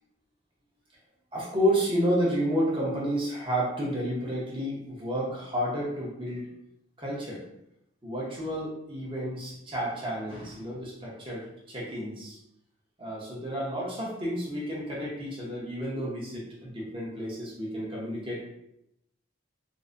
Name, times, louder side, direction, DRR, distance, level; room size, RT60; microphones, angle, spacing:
voice 1, 1.3-6.5 7.0-7.5 8.0-12.4 13.0-18.4, equal, 25° right, -5 dB, 1.0 m, -31 dB
3.8 x 2.7 x 2.6 m, 0.81 s
head